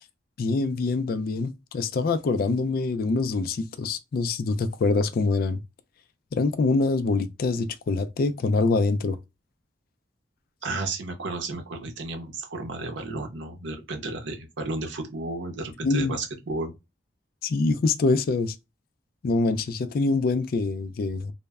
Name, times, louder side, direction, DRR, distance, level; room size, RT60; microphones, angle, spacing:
voice 1, 0.4-5.6 6.3-9.2 15.8-16.2 17.4-18.6 19.2-21.3, left 3 dB, 55° left, 0.3 m, -25 dB
voice 2, 10.6-16.7, right 2 dB, 75° right, 0.6 m, -33 dB
2.1 x 2.0 x 3.4 m
head